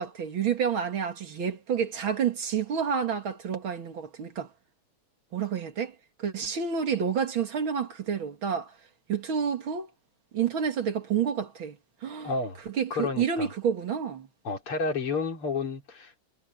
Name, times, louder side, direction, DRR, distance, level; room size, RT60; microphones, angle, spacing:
voice 1, 0.0-4.5 5.3-8.7 9.1-9.9 10.3-11.8 12.0-12.3 12.7-14.3, right 7 dB, 65° right, 2.8 m, -29 dB
voice 2, 12.2-12.6 12.9-13.5 14.4-16.1, left 4 dB, 85° left, 4.2 m, -30 dB
omnidirectional pair, 2.4 m